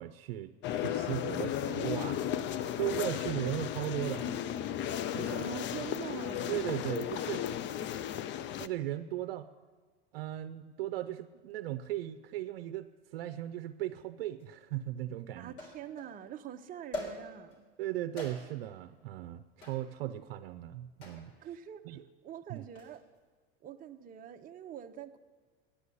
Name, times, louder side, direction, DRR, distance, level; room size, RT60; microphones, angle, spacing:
voice 1, 0.0-2.5 2.8-4.4 5.1-5.4 6.5-7.5 8.6-9.5 10.1-15.5 17.8-21.3 21.9-22.0 22.5-22.6, right 13 dB, 80° right, 10 dB, 0.6 m, -37 dB
sound 1, 0.6-8.7, left 10 dB, 40° left, 0.5 m, -35 dB
voice 2, 5.2-6.6 15.4-17.7 21.4-21.8 22.2-23.0 23.6-25.2, right 9 dB, 30° right, 5 dB, 0.7 m, -44 dB
sound 2, 14.4-14.5 15.6-16.2 16.9-17.5 18.2-18.7 19.6-19.9 21.0-21.3 22.6-23.0, left 1 dB, 70° left, 3.7 m, -42 dB
10.0 x 8.2 x 9.7 m, 1.4 s
supercardioid pair, 105°, 29 cm